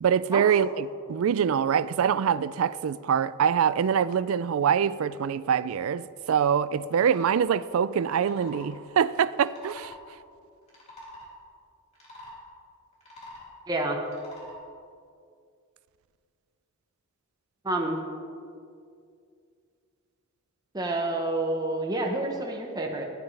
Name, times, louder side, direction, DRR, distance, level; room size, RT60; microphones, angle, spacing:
voice 1, 0.0-9.9, right 7 dB, 70° right, 17 dB, 0.3 m, -24 dB
sound 1, 6.9-7.4 8.0-8.7 9.4-10.0 10.6-11.3 11.9-12.4 12.9-13.5 14.1-14.6, left 1 dB, 30° left, 2.9 m, -45 dB
voice 2, 13.7-14.0 17.6-18.0 20.7-23.1, right 2 dB, 20° right, 1 dB, 1.0 m, -28 dB
15.5 x 11.0 x 3.3 m, 2.3 s
head